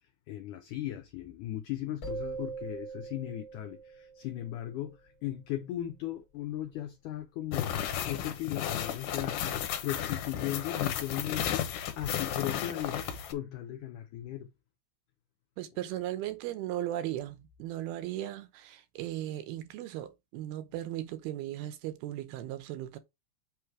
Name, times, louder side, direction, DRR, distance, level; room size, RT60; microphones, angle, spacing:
voice 1, 0.3-7.7 8.1-11.6 12.0-14.5, left 13 dB, 85° left, 1.8 m, -37 dB
sound 1, 2.0-4.7, right 4 dB, 35° left, 1.5 m, -41 dB
sound 2, 7.5-13.3, left 9 dB, 70° left, 2.2 m, -33 dB
voice 2, 15.6-23.0, right 13 dB, 80° right, 2.7 m, -37 dB
8.2 x 3.2 x 4.8 m
omnidirectional pair, 4.5 m